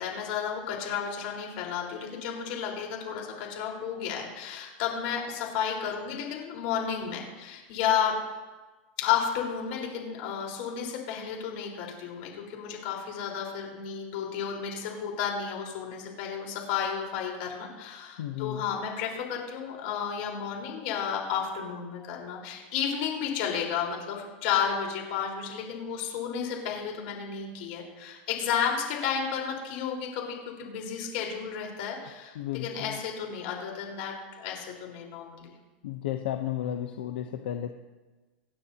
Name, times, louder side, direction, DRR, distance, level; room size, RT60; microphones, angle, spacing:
voice 1, 0.0-8.2 9.0-35.5, left 7 dB, 65° left, 0 dB, 4.3 m, -32 dB
voice 2, 18.2-18.6 32.3-33.0 35.8-37.7, left 11 dB, 90° left, 6 dB, 0.8 m, -33 dB
26.0 x 9.8 x 2.9 m, 1.2 s
supercardioid pair, 145°, 5 cm